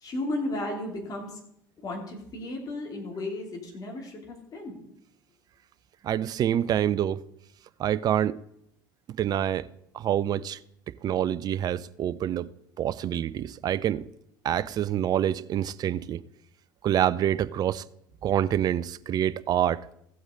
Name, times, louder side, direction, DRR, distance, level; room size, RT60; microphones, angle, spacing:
voice 1, 0.0-1.4 1.8-4.8, left 1 dB, 35° left, 3.0 m, -34 dB
voice 2, 6.0-7.2 7.8-8.4 9.2-9.7 9.9-10.6 10.9-12.5 12.8-14.0 14.4-16.2 16.8-17.8 18.2-19.9, right 10 dB, 35° right, 0.5 m, -26 dB
15.0 x 7.8 x 3.9 m
figure-of-eight pair, 65°, 11 cm